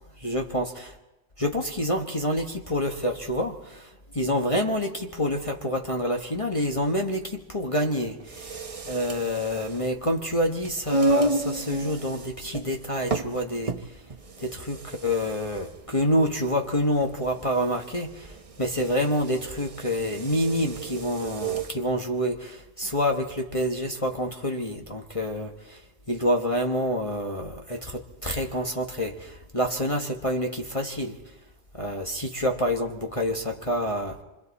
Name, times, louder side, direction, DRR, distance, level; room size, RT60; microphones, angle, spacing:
voice 1, 0.2-0.9 1.4-3.9 4.1-8.5 8.9-13.7 14.4-25.8 26.1-31.2 31.8-34.2, equal, 25° left, 1.2 m, -27 dB
sound 1, 8.2-21.8, right 2 dB, 30° right, 0.8 m, -32 dB
27.0 x 24.5 x 4.2 m
omnidirectional pair, 1.4 m